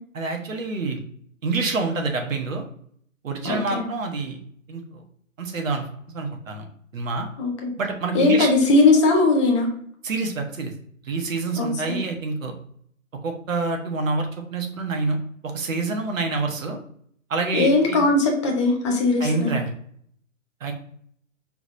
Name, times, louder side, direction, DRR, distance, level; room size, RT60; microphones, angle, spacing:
voice 1, 0.1-1.0 1.4-2.6 3.2-4.4 4.7-5.0 5.4-5.9 6.1-6.7 6.9-7.3 7.8-8.5 10.0-10.7 11.0-12.5 13.2-15.2 15.4-16.8 17.3-18.1 19.2-19.7 20.6-20.7, right 3 dB, 70° right, 3 dB, 1.2 m, -27 dB
voice 2, 3.4-3.8 7.4-7.7 8.1-9.7 11.6-12.0 17.5-19.5, left 3 dB, 20° left, 1 dB, 0.7 m, -19 dB
4.8 x 3.4 x 2.5 m, 0.63 s
hypercardioid pair, 145°, 41 cm